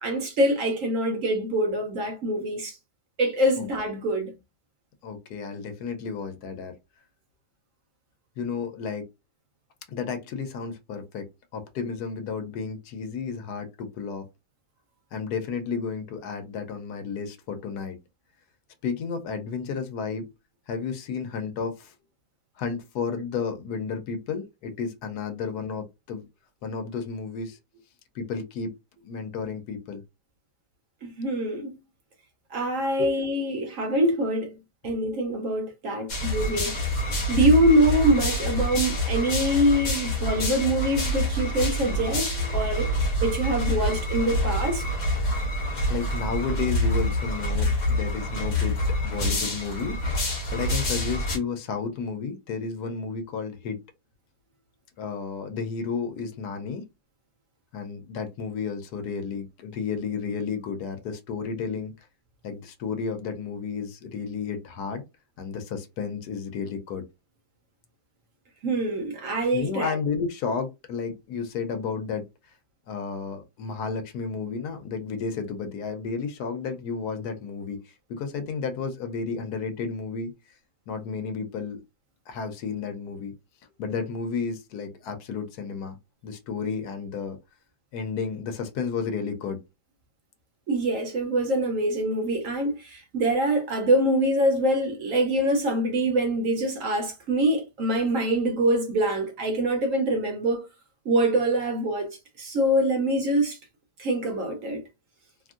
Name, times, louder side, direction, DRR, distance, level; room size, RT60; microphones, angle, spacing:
voice 1, 0.0-2.8 3.2-4.3 31.0-31.7 32.5-34.5 34.8-36.8 37.3-44.9 68.6-70.0 90.7-100.7 101.0-103.6 104.0-104.8, right 1 dB, 65° right, 0.9 m, -24 dB
voice 2, 5.0-6.7 8.4-9.0 9.9-11.3 11.5-14.2 15.1-18.0 18.8-20.3 20.7-21.9 22.6-26.3 26.6-27.6 28.1-28.7 29.0-30.0 33.0-33.1 45.9-48.8 49.0-50.0 50.5-53.8 55.0-56.8 57.7-61.9 62.4-65.0 65.4-67.0 69.5-72.2 72.9-80.3 80.9-81.8 82.3-83.3 83.8-86.0 86.2-87.4 87.9-89.6, left 5 dB, 75° left, 1.2 m, -32 dB
sound 1, 36.1-51.4, left 1 dB, 55° left, 1.2 m, -26 dB
3.0 x 2.5 x 2.4 m
omnidirectional pair, 1.7 m